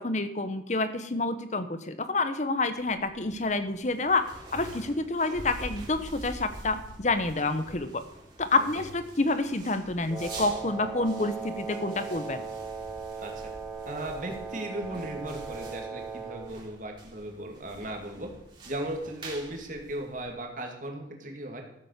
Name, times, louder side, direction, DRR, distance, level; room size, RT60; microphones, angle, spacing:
voice 1, 0.0-4.3 4.5-8.0 8.4-12.4, left 3 dB, 40° left, 11 dB, 0.9 m, -28 dB
sound 1, 2.7-20.6, right 1 dB, 25° right, 3.7 m, -46 dB
Wind instrument woodwind instrument, 10.1-16.5, right 5 dB, 10° right, 2.5 m, -38 dB
voice 2, 13.2-13.5 13.9-18.3 18.6-21.6, right 1 dB, 45° right, 2 dB, 2.5 m, -37 dB
14.5 x 7.6 x 6.6 m, 0.81 s
head